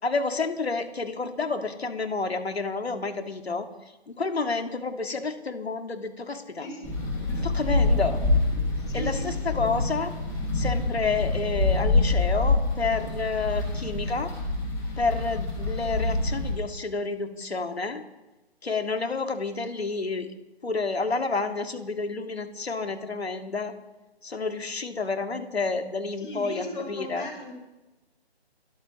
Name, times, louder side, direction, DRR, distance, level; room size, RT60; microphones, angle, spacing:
voice 1, 0.0-3.7 4.1-6.7 7.4-8.2 8.9-10.1 10.5-14.3 15.0-18.0 18.6-20.3 20.6-23.7 24.2-27.3, left 4 dB, 70° left, 6 dB, 2.2 m, -29 dB
voice 2, 6.6-7.0 8.9-9.5 26.2-27.5, left 1 dB, 50° left, -1 dB, 8.0 m, -37 dB
sound 1, 6.8-16.5, left 2 dB, 10° left, 5.2 m, -26 dB
29.0 x 14.0 x 3.2 m, 1.0 s
figure-of-eight pair, 155°, 33 cm